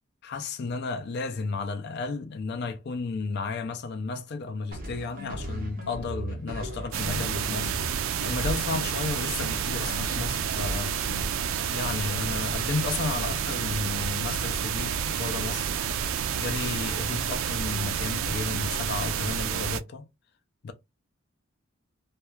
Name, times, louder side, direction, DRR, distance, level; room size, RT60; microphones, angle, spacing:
voice 1, 0.2-7.7 8.2-10.9 11.7-15.7 16.3-20.1 20.6-20.7, left 4 dB, 50° left, 0.4 m, -33 dB
sound 1, 4.7-9.1 9.4-11.8, equal, 45° right, 0.8 m, -37 dB
sound 2, 6.9-19.8, right 8 dB, 75° right, 0.3 m, -29 dB
2.3 x 2.1 x 3.0 m
head